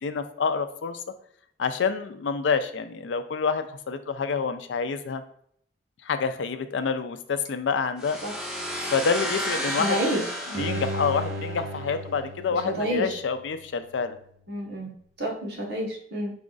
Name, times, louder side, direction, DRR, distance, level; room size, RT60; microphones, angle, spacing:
voice 1, 0.0-1.0 1.6-5.2 6.0-8.2 8.9-10.0 10.5-14.2, left 5 dB, 85° left, 10 dB, 0.4 m, -27 dB
sound 1, 8.0-11.7, equal, 5° right, 0.6 m, -32 dB
voice 2, 9.6-10.7 12.5-13.2 14.5-14.9 15.2-16.3, right 1 dB, 65° right, -2 dB, 1.2 m, -29 dB
Bowed string instrument, 10.5-13.7 14.1-14.2, right 1 dB, 80° right, 0.5 m, -35 dB
4.8 x 2.4 x 3.8 m, 0.64 s
head